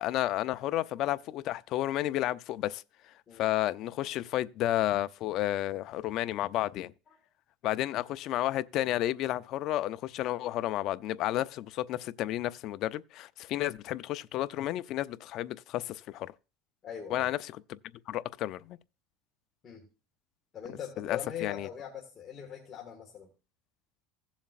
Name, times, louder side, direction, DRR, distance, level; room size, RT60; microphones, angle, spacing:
voice 1, 0.0-2.8 3.4-6.9 7.6-16.3 17.1-17.8 18.1-18.8 21.0-21.7, left 14 dB, 50° left, 0.4 m, -32 dB
voice 2, 16.8-17.3 19.6-19.9 20.5-23.3, left 8 dB, 30° left, 1.6 m, -41 dB
16.5 x 7.2 x 2.5 m
supercardioid pair, 140°, 0 cm